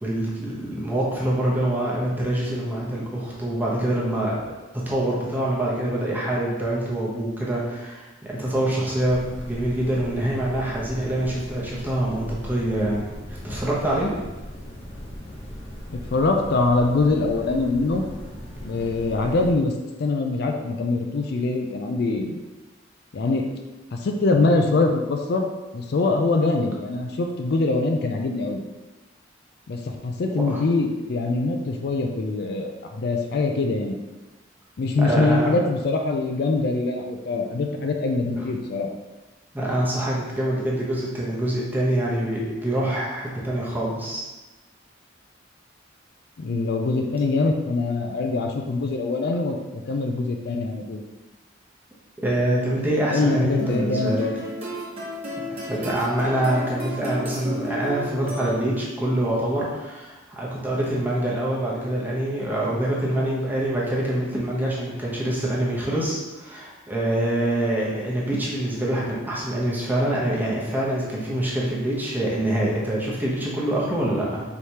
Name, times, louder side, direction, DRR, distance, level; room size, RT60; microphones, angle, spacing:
voice 1, 0.0-4.4 4.7-9.2 9.5-14.1 30.4-30.6 35.0-35.6 39.5-44.2 52.2-54.2 55.5-74.4, right 1 dB, 10° right, -5 dB, 0.9 m, -25 dB
sound 1, 9.0-19.5, equal, 30° left, 0.7 m, -38 dB
voice 2, 15.9-18.0 18.6-19.7 20.0-22.4 23.1-23.5 23.9-28.6 29.7-34.0 34.8-38.9 46.4-51.0 53.1-54.5, left 3 dB, 55° left, 3 dB, 0.4 m, -23 dB
sound 2, 53.6-59.0, equal, 30° right, 1.1 m, -33 dB
4.7 x 3.3 x 2.8 m, 1.1 s
head